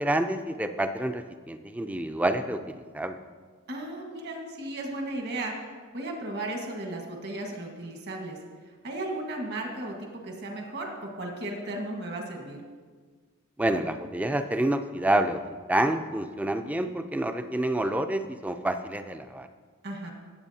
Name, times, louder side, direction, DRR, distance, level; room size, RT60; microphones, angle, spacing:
voice 1, 0.0-3.2 13.6-15.4 15.7-19.5, right 1 dB, 5° right, 8 dB, 0.4 m, -28 dB
voice 2, 3.7-5.5 5.9-8.4 8.6-12.6 19.8-20.1, right 1 dB, 50° right, 1 dB, 1.5 m, -35 dB
16.0 x 8.2 x 2.8 m, 1.5 s
head